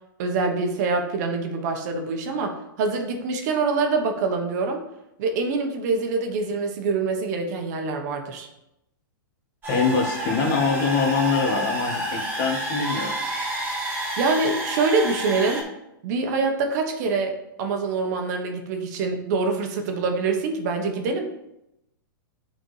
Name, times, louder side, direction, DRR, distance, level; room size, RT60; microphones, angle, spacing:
voice 1, 0.2-4.8 5.2-8.5 14.2-15.7 16.0-17.3 17.6-21.3, right 4 dB, 50° right, 4 dB, 1.1 m, -25 dB
sound 1, 9.6-15.6, right 1 dB, 15° right, 2.0 m, -29 dB
voice 2, 9.7-13.1, left 5 dB, 40° left, 1 dB, 1.5 m, -24 dB
9.0 x 4.3 x 3.3 m, 0.86 s
hypercardioid pair, 140°, 12 cm